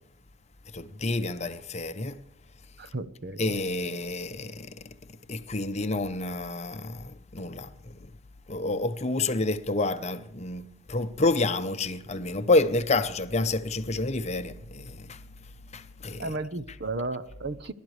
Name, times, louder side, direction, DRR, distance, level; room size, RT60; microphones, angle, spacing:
voice 1, 0.7-2.2 3.4-4.7 5.3-7.7 8.5-10.6 10.9-15.2 15.7-16.3, left 2 dB, 35° left, 0.8 m, -28 dB
voice 2, 2.8-3.6 16.2-17.7, right 2 dB, 55° right, 0.8 m, -34 dB
29.5 x 12.0 x 3.3 m
head